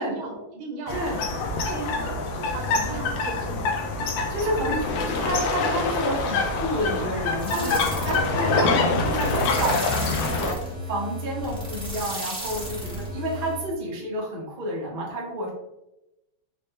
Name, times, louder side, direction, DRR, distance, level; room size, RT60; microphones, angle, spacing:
voice 1, 0.0-3.8 7.5-9.0, right 2 dB, 80° right, 1 dB, 1.6 m, -37 dB
sound 1, 0.9-10.5, left 3 dB, 75° left, 1.2 m, -25 dB
voice 2, 0.9-1.2 4.3-7.8 8.0-15.5, right 1 dB, 45° right, -3 dB, 0.6 m, -30 dB
sound 2, 7.4-13.7, equal, 10° left, 0.3 m, -34 dB
4.2 x 2.2 x 3.1 m, 0.91 s
omnidirectional pair, 2.3 m